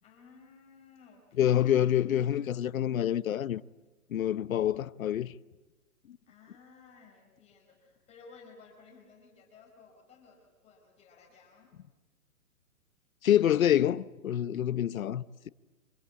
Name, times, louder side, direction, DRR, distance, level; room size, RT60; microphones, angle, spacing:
voice 1, 0.0-1.6 4.8-5.0 6.3-11.8, left 4 dB, 15° left, 4.5 m, -56 dB
voice 2, 1.4-3.6 4.1-5.3 13.2-15.5, left 11 dB, 70° left, 0.9 m, -27 dB
26.0 x 25.5 x 8.5 m
hypercardioid pair, 155°, 43 cm